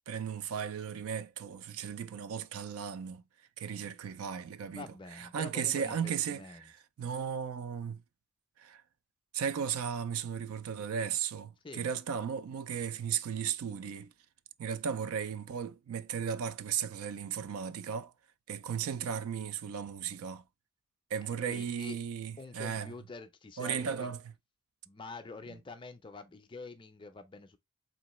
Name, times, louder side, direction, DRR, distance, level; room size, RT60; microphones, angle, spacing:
voice 1, 0.1-3.2 3.6-4.9 5.2-6.7 7.0-8.0 8.6-8.8 9.3-14.1 14.6-18.1 18.5-20.4 21.1-22.9 23.6-24.2, right 7 dB, 70° right, 0.3 m, -35 dB
voice 2, 4.8-6.7 11.6-11.9 21.5-22.0 22.4-24.1 24.9-27.6, left 3 dB, 20° left, 0.4 m, -46 dB
3.9 x 2.9 x 3.0 m
head